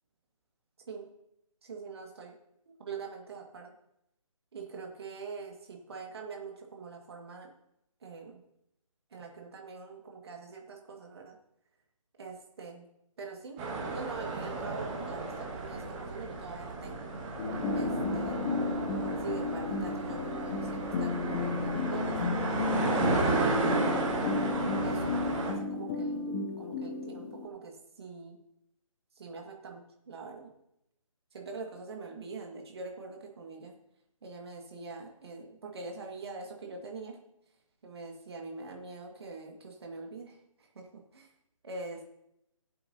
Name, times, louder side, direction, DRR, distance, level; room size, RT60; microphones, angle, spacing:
voice 1, 1.6-2.3 2.8-3.7 4.5-7.5 8.0-8.4 9.1-11.4 12.2-12.9 13.2-13.6 13.9-17.1 17.7-18.5 19.2-22.2 22.9-23.9 24.8-28.4 29.2-30.5 31.3-33.7 34.2-37.2 37.8-40.9 41.1-41.3 41.6-42.0, right 4 dB, 45° right, 2 dB, 1.9 m, -44 dB
sound 1, 13.6-25.5, right 3 dB, 15° right, 1.7 m, -33 dB
sound 2, 17.4-27.5, left 4 dB, 15° left, 0.7 m, -33 dB
18.0 x 7.8 x 2.8 m, 0.82 s
figure-of-eight pair, 150°, 18 cm